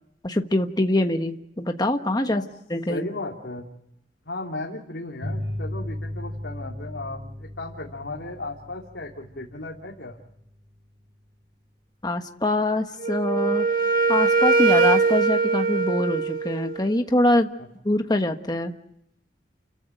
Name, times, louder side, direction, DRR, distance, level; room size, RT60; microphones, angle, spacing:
voice 1, 0.2-2.4 2.7-3.1 12.0-13.7 14.1-17.5 17.8-18.7, left 1 dB, 20° left, 5 dB, 1.3 m, -24 dB
voice 2, 2.9-3.7 4.2-10.2, left 2 dB, 70° left, 0 dB, 3.0 m, -35 dB
sound 1, 5.2-10.3, left 1 dB, 80° right, 6.4 m, -35 dB
Wind instrument woodwind instrument, 13.0-16.9, right 4 dB, 50° right, 1.7 m, -21 dB
29.5 x 15.0 x 9.1 m, 0.79 s
head